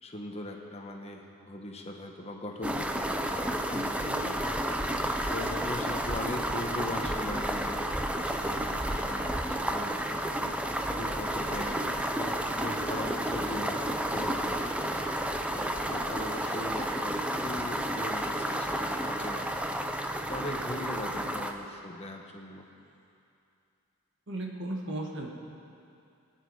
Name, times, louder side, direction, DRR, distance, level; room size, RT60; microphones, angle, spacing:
voice 1, 0.0-4.5 5.3-7.9 8.2-10.2 11.0-14.7 15.5-19.8 20.3-22.7, left 1 dB, 30° left, 2 dB, 1.1 m, -40 dB
sound 1, 2.6-21.5, right 1 dB, 5° right, 0.6 m, -31 dB
voice 2, 3.7-4.1 20.7-20.8 24.3-25.3, right 1 dB, 55° right, 0 dB, 1.6 m, -36 dB
22.5 x 9.2 x 4.7 m, 2.6 s
head